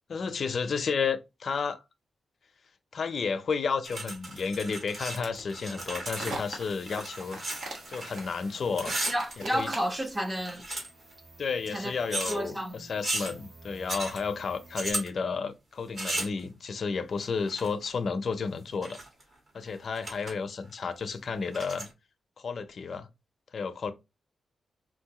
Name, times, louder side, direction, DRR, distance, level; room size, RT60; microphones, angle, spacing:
voice 1, 0.1-1.8 2.9-7.5 7.9-9.0 9.4-9.7 11.4-19.0 19.5-21.9 22.4-23.1 23.5-23.9, left 5 dB, 55° left, 0.5 m, -32 dB
sound 1, 3.8-5.2 5.4-8.4 8.7-9.9 10.3-11.1 12.1-12.4 13.0-13.3 13.9-14.2 14.7-15.1 16.0-16.4 17.5-17.9 18.6-19.2 19.6-19.7 20.0-20.3 20.7-20.8 21.5-21.9, right 2 dB, 45° right, 1.4 m, -35 dB
sound 2, 4.2-10.1, right 2 dB, 85° right, 1.2 m, -42 dB
sound 3, 6.3-14.9, right 2 dB, 60° right, 1.7 m, -53 dB
voice 2, 8.8-10.6 11.7-11.9 12.3-12.9, equal, 15° right, 0.5 m, -31 dB
3.7 x 2.6 x 2.8 m
wide cardioid pair, 135°, 0 cm